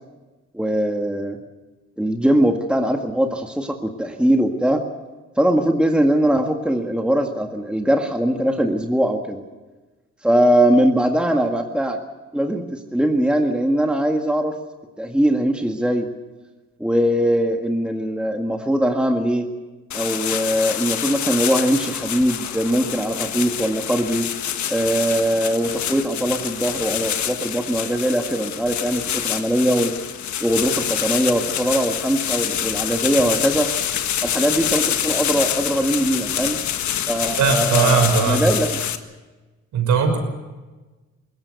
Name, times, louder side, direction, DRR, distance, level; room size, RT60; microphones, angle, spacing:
voice 1, 0.5-1.4 2.0-4.8 5.4-9.4 10.2-12.0 12.3-14.6 15.0-16.1 16.8-19.5 19.9-24.3 24.7-29.9 30.4-33.7 34.2-36.6 37.1-38.7, right 1 dB, 5° right, 3 dB, 1.8 m, -21 dB
sound 1, 19.9-39.0, left 10 dB, 70° left, 1.6 m, -26 dB
voice 2, 37.4-38.4 39.7-40.2, right 5 dB, 75° right, 6 dB, 5.9 m, -18 dB
21.5 x 18.0 x 8.2 m, 1.2 s
cardioid pair, 90°, 30 cm